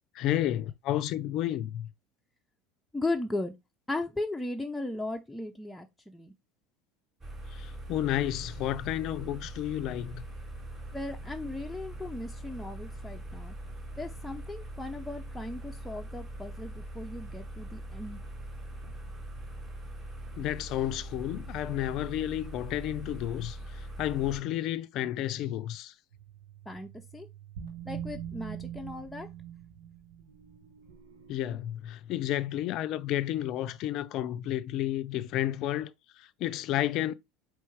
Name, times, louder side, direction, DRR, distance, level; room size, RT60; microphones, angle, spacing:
voice 1, 0.1-1.9 7.5-10.2 20.4-25.9 31.3-37.1, left 13 dB, 55° left, 0.4 m, -31 dB
voice 2, 2.9-3.5 3.9-6.3 10.9-13.6 14.0-18.2 26.7-27.3 27.8-29.3, left 2 dB, 5° left, 0.6 m, -37 dB
sound 1, 7.2-24.4, right 1 dB, 30° right, 2.8 m, -42 dB
sound 2, 26.1-31.5, right 9 dB, 75° right, 1.2 m, -43 dB
4.5 x 3.1 x 3.4 m
hypercardioid pair, 80°, 0 cm